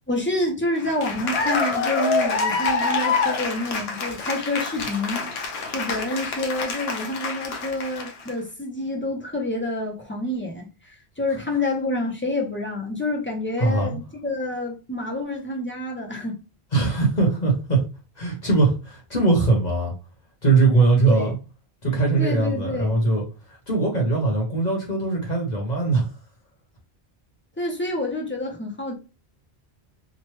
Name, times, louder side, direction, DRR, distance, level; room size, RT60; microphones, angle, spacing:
voice 1, 0.1-16.4 21.1-21.3 22.2-23.0 27.6-28.9, left 1 dB, 15° left, 0.4 m, -28 dB
Cheering / Applause, 0.8-8.3, left 4 dB, 75° left, 0.8 m, -26 dB
voice 2, 13.6-14.0 16.7-17.8 18.2-19.9 20.4-21.4 21.8-26.1, right 3 dB, 45° left, 0.9 m, -21 dB
3.0 x 2.2 x 3.0 m
omnidirectional pair, 1.1 m